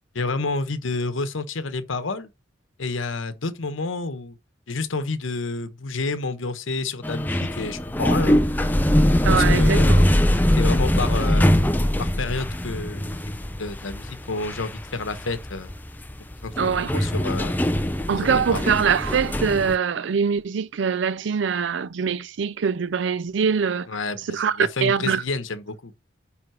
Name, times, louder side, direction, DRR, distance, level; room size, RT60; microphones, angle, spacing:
voice 1, 0.1-2.3 2.8-4.3 4.7-8.4 9.3-10.0 10.6-11.6 12.0-13.2 13.6-15.7 16.4-17.6 18.2-18.8 23.9-25.9, left 3 dB, 90° left, 1.0 m, -29 dB
sound 1, 7.0-19.8, equal, 10° left, 0.4 m, -22 dB
voice 2, 9.2-10.0 11.2-11.3 16.6-17.1 18.1-23.9 24.3-25.2, right 6 dB, 70° right, 0.4 m, -23 dB
9.5 x 3.6 x 4.5 m
head